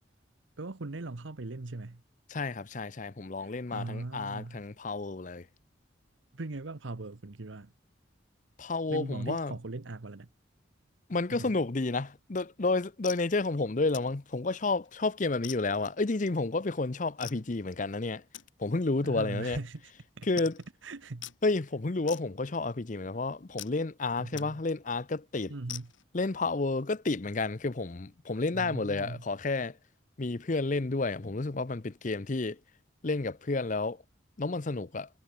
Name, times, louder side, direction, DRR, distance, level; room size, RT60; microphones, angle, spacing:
voice 1, 0.6-2.0 3.4-4.6 6.3-7.7 8.9-10.3 11.3-11.5 19.0-19.8 20.2-20.3 20.8-21.3 24.2-24.6 25.5-25.9 28.5-29.2, right 2 dB, 90° right, 1.0 m, -39 dB
voice 2, 2.3-5.5 8.6-9.6 11.1-18.2 18.6-19.6 20.3-20.5 21.4-25.5 26.1-29.8 30.2-32.6 33.0-34.0 34.4-35.1, left 3 dB, 40° left, 0.7 m, -31 dB
sound 1, 12.5-12.6 13.0-13.3 13.9-14.2 14.6-14.9 15.4-15.9 17.2-17.4 18.3-18.5 19.2-19.3 19.6-19.7 19.9-20.0 20.4-20.7 21.2-21.4 22.1-22.7 23.6-23.8 24.4-24.5 24.9-25.0 25.7-26.0, left 13 dB, 90° left, 1.6 m, -44 dB
head